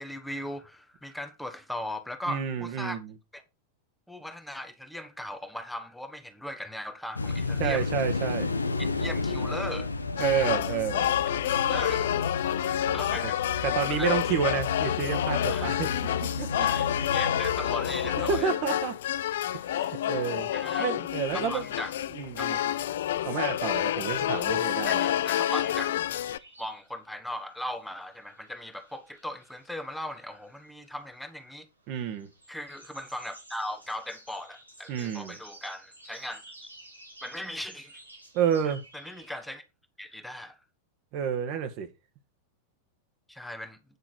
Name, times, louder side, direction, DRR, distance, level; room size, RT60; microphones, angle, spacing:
voice 1, 0.0-3.0 3.3-3.4 4.1-7.9 9.0-9.9 11.6-12.2 12.9-13.4 13.9-14.1 15.5-15.7 16.6-16.9 17.1-18.5 20.5-20.9 21.3-21.9 22.4-22.7 24.8-26.2 26.6-31.7 32.5-36.5 37.2-38.0 38.9-39.6 40.0-40.6 43.3-43.8, left 1 dB, 5° left, 1.2 m, -38 dB
voice 2, 2.3-3.1 7.6-8.5 10.2-11.1 13.6-16.7 18.2-19.0 19.6-20.5 20.8-21.6 22.1-22.6 23.2-25.1 31.9-32.3 34.9-35.4 38.3-38.8 41.1-41.9, right 8 dB, 40° right, 1.6 m, -30 dB
sound 1, 7.2-18.4, left 3 dB, 80° left, 0.8 m, -33 dB
sound 2, 10.2-26.4, left 11 dB, 60° left, 0.4 m, -29 dB
sound 3, 22.6-39.5, right 1 dB, 85° right, 3.4 m, -53 dB
9.8 x 5.9 x 4.5 m
figure-of-eight pair, 90°, 0 cm